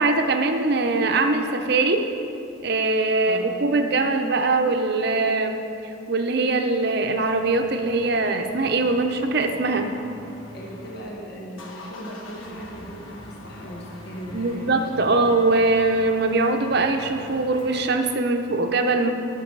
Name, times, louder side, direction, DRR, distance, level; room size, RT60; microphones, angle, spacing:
voice 1, 0.0-2.0 2.6-5.6 6.1-9.9 14.3-19.1, right 3 dB, 50° right, 5 dB, 0.7 m, -22 dB
voice 2, 3.2-3.6 10.5-15.2, equal, 50° left, -2 dB, 1.4 m, -38 dB
sound 1, 7.2-11.1 11.4-17.9, left 1 dB, 80° left, 1.2 m, -44 dB
14.0 x 6.1 x 4.7 m, 2.7 s
head